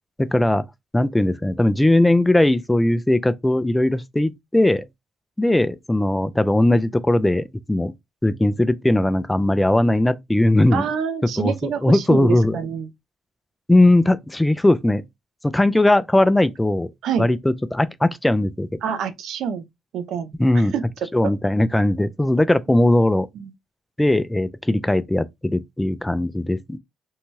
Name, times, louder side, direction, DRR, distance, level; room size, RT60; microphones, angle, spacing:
voice 1, 0.2-0.7 0.9-4.8 5.4-7.9 8.2-10.9 11.4-12.6 13.7-15.0 15.4-16.9 17.2-18.7 20.4-20.7 21.1-23.3 24.0-26.8, left 1 dB, 10° left, 0.3 m, -19 dB
voice 2, 10.7-12.9 17.0-17.3 18.8-19.6 19.9-20.8 21.2-21.3 23.4-23.5, right 7 dB, 80° right, 0.5 m, -27 dB
2.7 x 2.2 x 3.0 m
cardioid pair, 90°, 0 cm